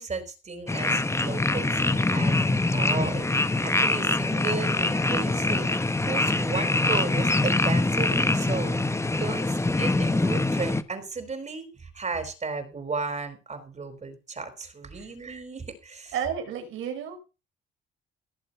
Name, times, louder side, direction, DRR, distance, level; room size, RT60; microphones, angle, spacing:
voice 1, 0.0-2.4 2.7-5.7 6.0-16.1, right 4 dB, 35° right, 10 dB, 4.7 m, -35 dB
sound 1, 0.7-10.8, left 2 dB, 15° left, 1.4 m, -24 dB
voice 2, 16.1-17.2, right 8 dB, 85° right, 6 dB, 5.1 m, -32 dB
17.5 x 7.6 x 5.7 m, 0.31 s
cardioid pair, 90°, 20 cm